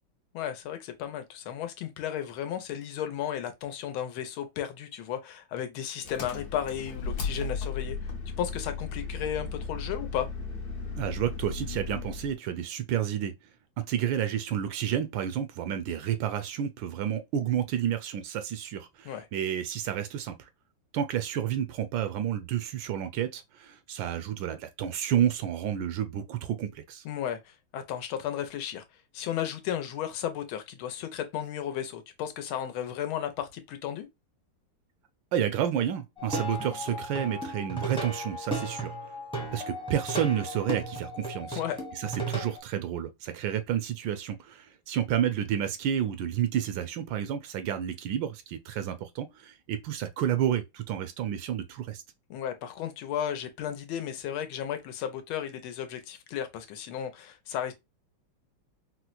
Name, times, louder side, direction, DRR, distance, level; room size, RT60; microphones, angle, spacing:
voice 1, 0.3-8.0 8.4-10.3 19.0-19.2 27.0-28.8 29.1-34.1 41.5-41.8 52.3-57.7, left 10 dB, 90° left, 1.5 m, -34 dB
Engine, 6.0-12.3, left 4 dB, 60° left, 1.2 m, -35 dB
voice 2, 11.0-13.3 13.8-20.5 20.9-27.0 35.3-38.9 39.5-41.6 42.0-52.0, right 10 dB, 75° right, 1.2 m, -30 dB
Plucked string instrument, 36.2-42.6, right 2 dB, 5° left, 0.6 m, -35 dB
4.3 x 2.1 x 2.3 m
omnidirectional pair, 2.2 m